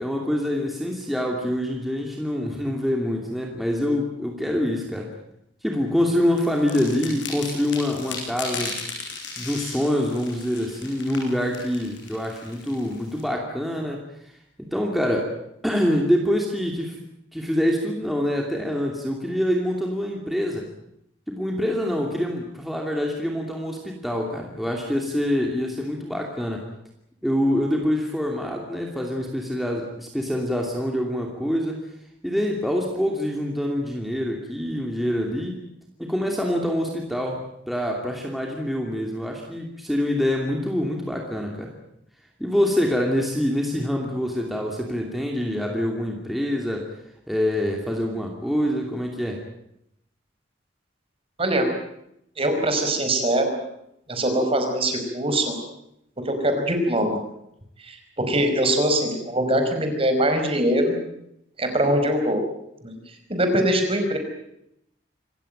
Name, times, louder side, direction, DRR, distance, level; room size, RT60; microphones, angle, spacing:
voice 1, 0.0-5.1 5.6-8.8 9.4-14.0 14.6-15.3 15.6-17.0 17.3-20.7 21.3-26.6 27.2-31.8 32.2-35.6 36.0-41.7 42.4-46.9 47.3-49.4, equal, ahead, 0 dB, 2.7 m, -25 dB
sound 1, 6.4-13.2, left 4 dB, 75° left, 7.1 m, -36 dB
voice 2, 52.4-53.5 54.1-55.5 56.2-57.2 57.8-60.9 61.6-62.4 62.8-63.0 63.3-64.2, right 1 dB, 30° right, 5 dB, 5.0 m, -22 dB
26.5 x 15.5 x 9.1 m, 0.78 s
head